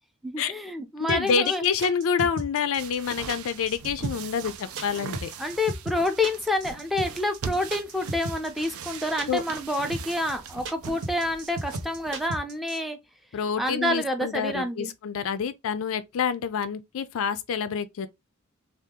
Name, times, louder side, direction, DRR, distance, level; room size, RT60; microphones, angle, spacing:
voice 1, 0.2-1.6 5.4-13.0 13.6-14.9, left 1 dB, ahead, 0.5 m, -28 dB
voice 2, 1.1-5.3 9.3-9.4 13.3-18.1, left 6 dB, 65° left, 0.4 m, -27 dB
sound 1, 1.1-12.8, right 2 dB, 60° right, 0.9 m, -35 dB
sound 2, 2.8-12.3, right 6 dB, 75° right, 0.5 m, -40 dB
2.8 x 2.4 x 3.5 m
head